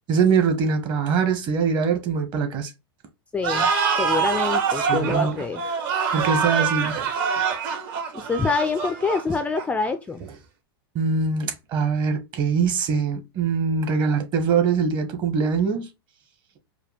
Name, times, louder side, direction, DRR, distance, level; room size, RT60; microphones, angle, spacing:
voice 1, 0.1-2.7 4.7-5.4 6.1-7.1 10.2-10.3 10.9-15.9, right 5 dB, 35° right, 1.1 m, -23 dB
voice 2, 3.3-3.7 4.0-5.6 8.1-10.2, left 4 dB, 10° left, 0.4 m, -26 dB
sound 1, 3.4-9.9, right 6 dB, 55° right, 1.4 m, -25 dB
4.8 x 2.2 x 3.3 m
hypercardioid pair, 120°, 13 cm